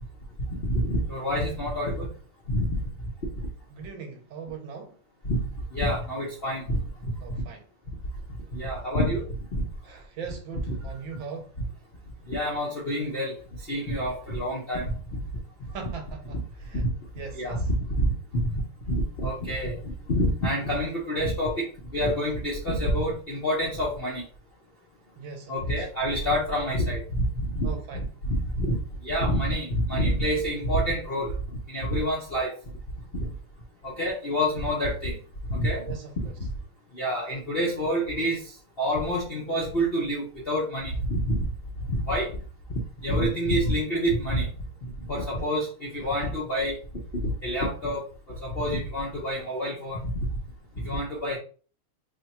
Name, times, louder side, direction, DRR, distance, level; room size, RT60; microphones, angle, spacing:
voice 1, 0.6-2.1 2.5-2.7 3.3-3.4 5.2-5.4 5.7-7.2 7.9-8.0 8.5-9.6 10.7-10.8 12.3-13.4 13.7-14.9 15.1-15.3 16.3-16.4 16.7-16.9 17.3-24.2 25.5-31.3 31.7-32.6 33.1-33.3 33.8-35.2 35.5-35.9 36.4-36.5 36.9-41.5 41.9-42.4 42.7-44.5 44.8-46.8 47.2-50.3 50.8-51.4, equal, 55° left, 0.6 m, -27 dB
voice 2, 3.7-5.0 7.2-7.6 9.8-11.5 15.7-16.8 17.1-17.6 25.2-25.9 27.6-28.0 35.9-36.2 45.4-45.5 46.0-46.1, right 6 dB, 70° right, 1.3 m, -40 dB
3.5 x 2.2 x 4.1 m
omnidirectional pair, 2.3 m